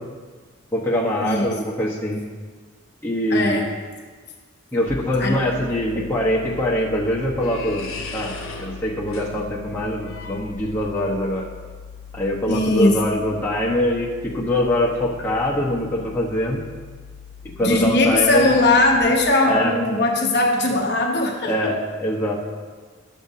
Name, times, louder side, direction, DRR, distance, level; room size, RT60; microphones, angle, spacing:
voice 1, 0.7-2.2 3.0-3.7 4.7-7.8 8.1-11.4 12.1-16.6 17.6-18.5 19.5-19.7 21.4-22.3, left 1 dB, 10° left, -5 dB, 1.0 m, -23 dB
voice 2, 3.3-3.7 5.2-5.4 12.5-13.0 17.6-21.7, left 2 dB, 50° left, 0 dB, 1.0 m, -19 dB
sound 1, 4.9-19.0, left 7 dB, 55° right, 2.5 m, -41 dB
sound 2, 6.5-11.1, left 3 dB, 80° left, 0.9 m, -38 dB
11.5 x 6.8 x 2.8 m, 1.5 s
head